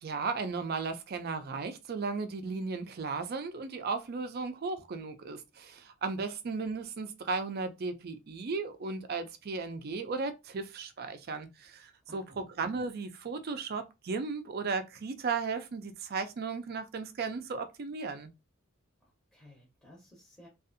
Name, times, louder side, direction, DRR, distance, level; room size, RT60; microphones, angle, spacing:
voice 1, 0.0-18.3, right 4 dB, 50° right, 0.4 m, -35 dB
voice 2, 12.1-12.4 19.0-20.5, left 1 dB, 5° left, 0.7 m, -57 dB
2.5 x 2.3 x 2.5 m
head